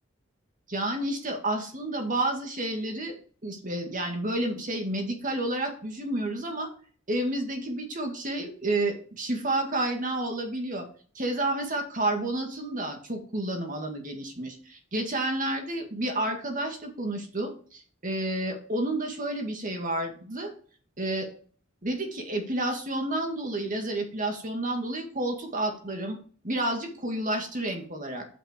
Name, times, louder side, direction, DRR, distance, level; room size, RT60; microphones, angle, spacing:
voice 1, 0.7-3.2 3.4-6.7 7.1-10.9 11.1-20.5 21.0-21.3 21.8-26.2 26.4-28.3, right 1 dB, 45° right, 3 dB, 2.1 m, -30 dB
8.3 x 5.9 x 5.1 m, 0.43 s
head